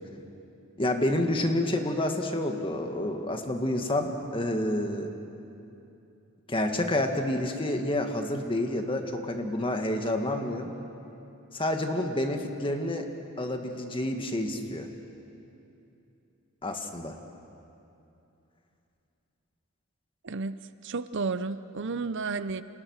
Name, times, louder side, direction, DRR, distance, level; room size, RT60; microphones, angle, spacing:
voice 1, 0.8-5.1 6.5-10.7 11.5-13.1 13.4-14.9 16.6-17.2, left 1 dB, 25° left, 4 dB, 1.9 m, -29 dB
voice 2, 20.2-20.6 20.8-22.6, right 4 dB, 55° right, 13 dB, 0.6 m, -32 dB
29.5 x 27.0 x 6.5 m, 2.8 s
head